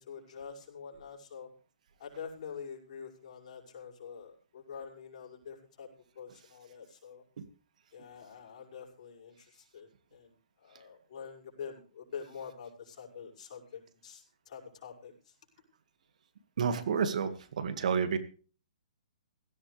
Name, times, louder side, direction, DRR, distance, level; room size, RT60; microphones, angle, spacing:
voice 1, 0.0-1.5 2.0-5.9 6.1-7.2 7.9-15.3, left 6 dB, 55° left, -2 dB, 6.1 m, -46 dB
voice 2, 16.6-18.2, right 6 dB, 65° right, 10 dB, 2.0 m, -30 dB
17.0 x 15.5 x 3.4 m, 0.39 s
hypercardioid pair, 135°, 4 cm